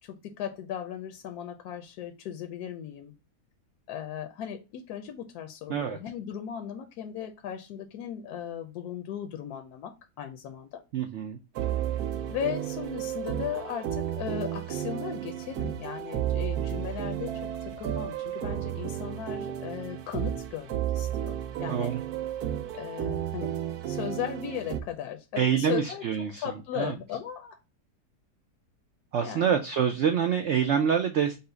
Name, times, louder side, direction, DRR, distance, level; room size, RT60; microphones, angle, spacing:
voice 1, 0.0-3.1 3.9-10.8 12.3-21.9 22.7-23.5 23.9-27.6 29.2-29.5, left 9 dB, 75° left, 1.0 m, -37 dB
voice 2, 10.9-11.4 21.7-22.0 25.4-26.4 26.8-26.9 29.1-31.4, right 8 dB, 85° right, 0.6 m, -26 dB
sound 1, 11.6-24.8, right 11 dB, 70° right, 1.0 m, -32 dB
5.4 x 2.0 x 3.8 m
omnidirectional pair, 1.8 m